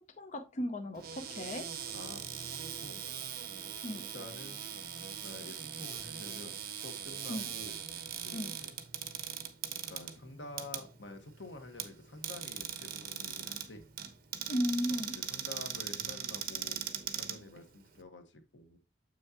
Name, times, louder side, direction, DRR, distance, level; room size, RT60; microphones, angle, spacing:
voice 1, 0.2-1.7 3.8-4.0 7.3-7.5 8.3-8.5 14.5-15.1, equal, 40° left, 7 dB, 0.6 m, -35 dB
Cupboard open or close, 0.9-18.0, right 9 dB, 55° right, 1.1 m, -41 dB
voice 2, 1.9-2.2 2.8-3.0 4.1-4.7 5.2-7.8 8.2-8.8 9.6-13.8 14.9-16.8 17.1-18.8, left 2 dB, 85° left, 6 dB, 1.5 m, -49 dB
7.7 x 6.5 x 2.9 m, 0.29 s
head